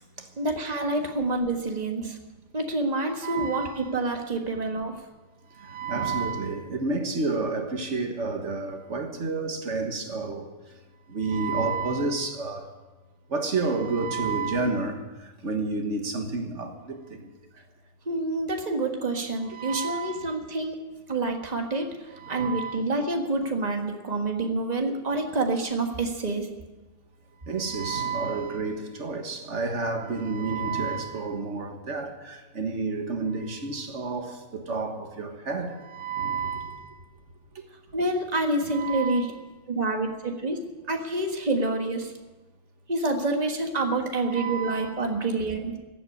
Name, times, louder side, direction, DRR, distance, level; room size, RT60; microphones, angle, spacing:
voice 1, 0.4-2.2 2.5-4.9 18.0-20.8 21.1-26.5 37.9-39.3 39.7-40.6 40.9-42.1 42.9-45.8, right 2 dB, 35° right, 1.7 m, -27 dB
voice 2, 3.2-3.7 5.6-10.5 11.1-12.7 13.3-17.3 19.5-20.4 22.2-22.8 27.5-36.9 38.7-39.2 44.2-44.9, right 4 dB, 85° right, 1.8 m, -30 dB
15.0 x 8.3 x 9.8 m
omnidirectional pair, 1.2 m